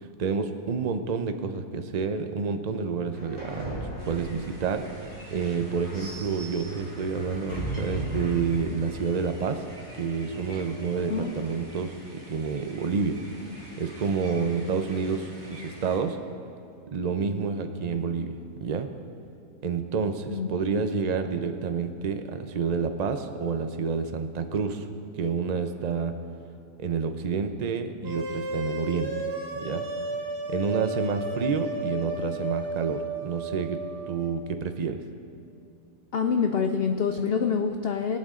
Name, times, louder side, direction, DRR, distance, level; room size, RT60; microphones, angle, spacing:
voice 1, 0.0-4.8 5.3-9.6 10.0-11.9 12.3-13.2 13.8-16.2 16.9-18.3 18.6-18.9 19.6-24.9 25.1-26.2 26.8-29.1 29.6-29.9 30.5-33.8 34.1-35.0, right 5 dB, 55° right, 7 dB, 0.4 m, -29 dB
sound 1, 3.1-11.6, right 1 dB, 45° left, 3.0 m, -38 dB
sound 2, 4.0-16.0, equal, 15° right, 3.5 m, -48 dB
sound 3, 28.0-34.2, right 2 dB, 80° right, 2.3 m, -33 dB
voice 2, 36.1-38.2, left 6 dB, 85° left, 6 dB, 0.5 m, -26 dB
22.5 x 8.6 x 3.7 m, 2.5 s
omnidirectional pair, 1.7 m